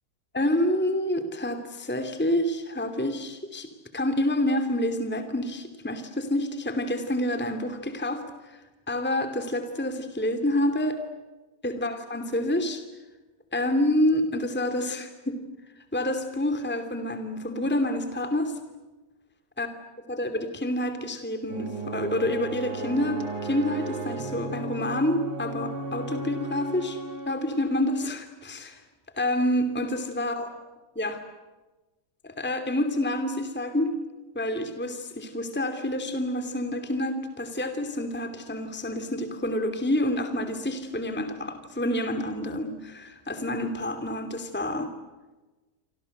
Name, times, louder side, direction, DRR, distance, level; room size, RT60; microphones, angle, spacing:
voice 1, 0.3-8.6 8.9-11.0 11.6-12.8 13.5-15.4 15.9-18.6 19.6-19.7 20.1-27.0 27.3-28.8 29.2-30.5 30.9-31.2 32.2-33.9 34.3-44.9, left 1 dB, 5° left, 7 dB, 2.6 m, -28 dB
sound 1, 21.5-27.9, right 3 dB, 90° right, 5.5 m, -35 dB
29.5 x 25.5 x 7.9 m, 1.2 s
omnidirectional pair, 2.2 m